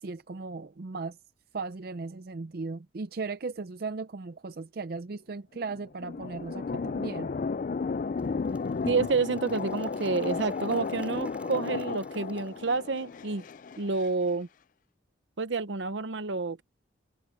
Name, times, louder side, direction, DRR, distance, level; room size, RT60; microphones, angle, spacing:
voice 1, 0.0-1.2 1.5-7.3, right 4 dB, 50° right, 0.5 m, -37 dB
sound 1, 5.5-14.1, left 4 dB, 45° left, 0.3 m, -34 dB
Applause / Crowd, 7.9-13.3, right 1 dB, 5° right, 2.7 m, -57 dB
voice 2, 8.9-13.4 13.8-14.5 15.4-16.6, right 4 dB, 75° right, 0.8 m, -29 dB
head